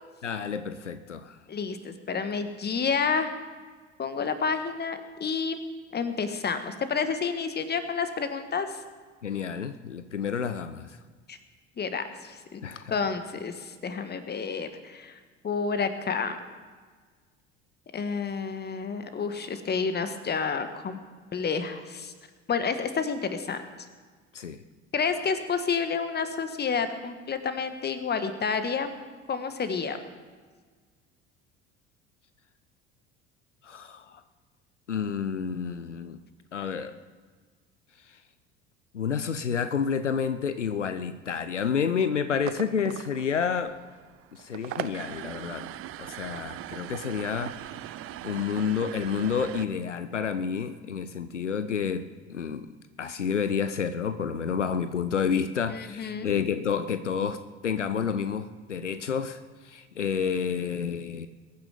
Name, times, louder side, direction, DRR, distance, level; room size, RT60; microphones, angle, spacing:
voice 1, 0.2-1.4 9.2-11.0 12.6-13.0 24.3-24.6 33.6-34.2 34.9-36.2 36.5-37.0 38.1-38.2 38.9-43.8 44.3-45.7 46.0-47.9 48.2-52.7 53.0-61.3, left 6 dB, 90° left, 12 dB, 0.6 m, -30 dB
voice 2, 1.5-3.3 4.0-5.6 5.9-8.8 11.3-11.4 11.8-12.6 12.9-15.2 15.4-16.4 17.9-21.0 21.3-22.1 22.5-23.6 24.9-28.9 29.3-30.0 55.7-56.3, left 5 dB, 30° left, 9 dB, 1.6 m, -29 dB
sound 1, 42.3-49.7, right 13 dB, 40° right, 0.7 m, -40 dB
22.0 x 9.4 x 5.0 m, 1.5 s
figure-of-eight pair, 60°, 35 cm